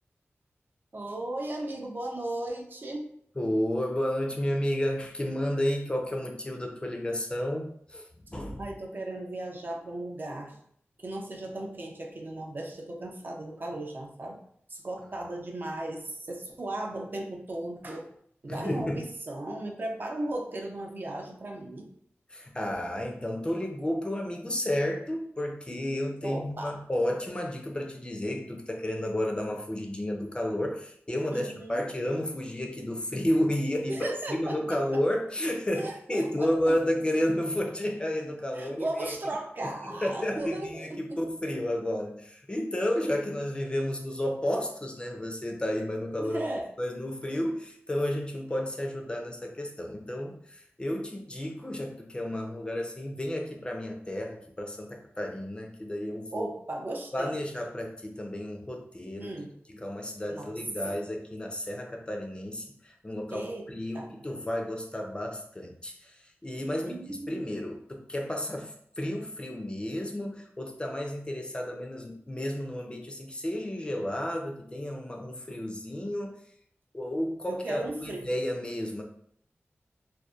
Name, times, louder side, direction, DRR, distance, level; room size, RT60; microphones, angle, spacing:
voice 1, 0.9-3.1 8.6-10.6 11.0-14.4 14.7-18.1 18.4-21.9 26.2-26.8 31.3-31.8 33.9-35.0 35.8-36.8 38.6-41.2 46.2-46.7 56.3-57.4 59.2-59.5 60.3-60.5 60.8-61.0 63.3-63.7 63.9-64.2 66.6-67.5 77.5-78.2, right 1 dB, 45° right, 1 dB, 0.4 m, -36 dB
voice 2, 3.4-8.7 18.5-19.1 22.3-39.1 39.6-46.4 46.8-56.5 57.1-59.3 59.7-76.4 76.9-79.0, left 1 dB, 20° left, 1 dB, 0.4 m, -32 dB
2.6 x 2.1 x 2.3 m, 0.66 s
wide cardioid pair, 75°, 5 cm